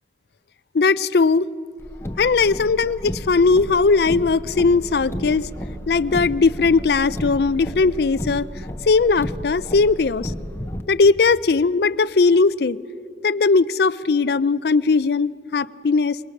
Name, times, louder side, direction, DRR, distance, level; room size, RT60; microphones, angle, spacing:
voice 1, 0.7-1.5 2.2-5.5 5.9-8.5 8.8-10.3 10.9-12.8 13.2-16.2, left 4 dB, 65° left, 18 dB, 0.5 m, -18 dB
Car, 1.8-10.8, left 1 dB, 15° left, 1.0 m, -33 dB
sound 1, 4.4-8.5, right 2 dB, 50° right, 1.3 m, -41 dB
27.0 x 23.0 x 6.5 m, 2.5 s
head